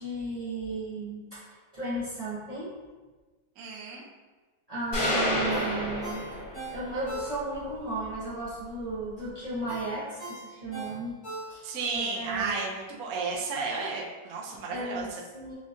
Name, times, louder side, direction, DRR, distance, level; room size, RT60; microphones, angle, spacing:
voice 1, 0.0-1.4 1.7-2.7 4.7-6.3 6.7-11.1 11.5-11.6 11.9-12.5 14.7-15.5, right 2 dB, 45° right, -11 dB, 0.5 m, -34 dB
voice 2, 3.6-4.0 11.6-15.2, right 4 dB, 65° right, -3 dB, 1.0 m, -33 dB
sound 1, 4.9-6.9, left 1 dB, 75° left, 2.3 m, -29 dB
Ringtone, 5.5-7.7 8.1-8.2 9.7-11.9 12.3-12.4, right 2 dB, 30° left, 0.4 m, -40 dB
6.2 x 2.4 x 2.6 m, 1.3 s
omnidirectional pair, 1.9 m